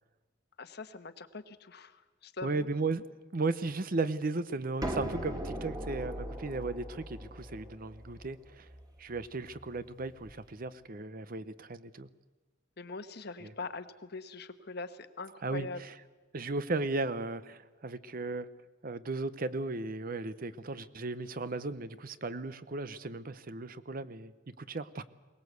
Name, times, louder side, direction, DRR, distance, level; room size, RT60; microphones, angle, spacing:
voice 1, 0.6-2.7 12.8-15.8, left 3 dB, 60° left, 1.2 m, -42 dB
voice 2, 2.4-3.0 3.3-8.7 9.0-12.1 13.4-13.5 15.4-15.9 16.3-18.5 18.8-25.0, right 3 dB, 50° right, 0.8 m, -36 dB
sound 1, 4.8-10.4, right 1 dB, 20° right, 2.2 m, -40 dB
22.5 x 19.0 x 8.1 m
head